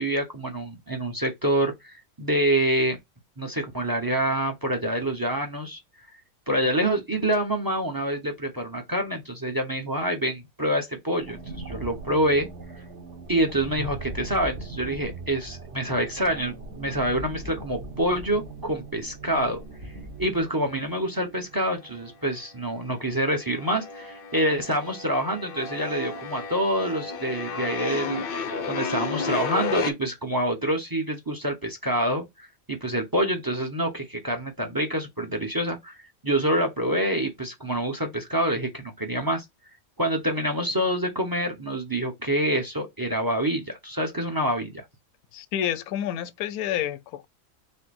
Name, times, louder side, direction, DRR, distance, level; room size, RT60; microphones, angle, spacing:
voice 1, 0.0-3.0 3.4-5.8 6.5-12.5 13.3-19.9 20.2-28.2 28.7-36.0 36.2-39.4 40.0-44.8, right 1 dB, 20° right, 0.6 m, -26 dB
sound 1, 11.2-22.2, right 2 dB, 55° right, 1.2 m, -40 dB
sound 2, 21.7-22.5 22.7-29.9, left 5 dB, 60° left, 0.6 m, -33 dB
voice 2, 45.3-47.3, left 10 dB, 85° left, 1.1 m, -29 dB
5.1 x 2.1 x 4.1 m
omnidirectional pair, 1.5 m